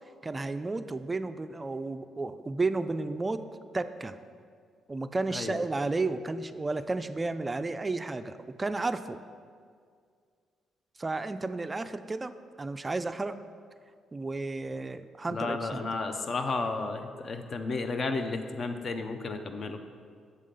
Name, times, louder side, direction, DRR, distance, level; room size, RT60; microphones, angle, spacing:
voice 1, 0.2-3.5 3.7-4.2 4.9-9.2 11.0-12.3 12.6-13.4 14.1-15.9, right 3 dB, 25° right, 11 dB, 0.3 m, -32 dB
voice 2, 15.3-19.8, left 3 dB, 45° left, 7 dB, 0.6 m, -32 dB
7.5 x 3.7 x 6.5 m, 2.1 s
cardioid pair, 90°, 0 cm